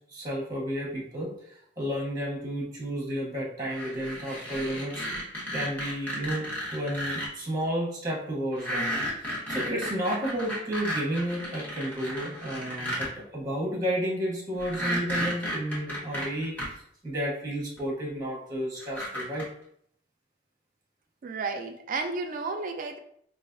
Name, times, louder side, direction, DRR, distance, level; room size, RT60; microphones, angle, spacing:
voice 1, 0.1-8.9 9.2-16.5 17.0-19.5, equal, 20° right, -3 dB, 0.9 m, -32 dB
sound 1, 3.7-7.3 8.5-13.1 14.6-16.7 17.8-17.9 18.8-19.4, equal, 10° left, 1.1 m, -33 dB
voice 2, 21.2-23.0, right 3 dB, 50° right, 6 dB, 0.4 m, -32 dB
4.8 x 2.5 x 2.5 m, 0.66 s
head